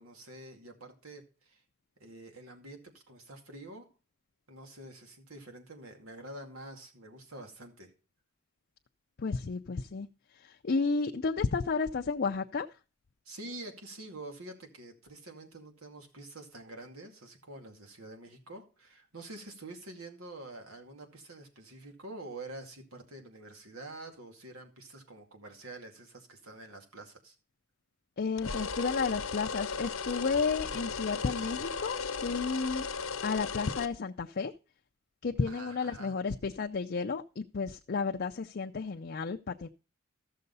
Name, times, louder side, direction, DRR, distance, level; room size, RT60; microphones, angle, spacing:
voice 1, 0.0-1.6 2.0-3.9 4.5-7.9 13.3-27.3 35.5-36.1, right 2 dB, 90° right, 4 dB, 2.4 m, -47 dB
voice 2, 9.2-10.1 10.3-12.7 28.2-32.9 33.2-34.5 35.2-39.7, left 4 dB, 50° left, 4 dB, 0.5 m, -32 dB
sound 1, 28.4-33.9, left 5 dB, 85° left, 1.0 m, -36 dB
14.5 x 6.7 x 4.0 m, 0.34 s
head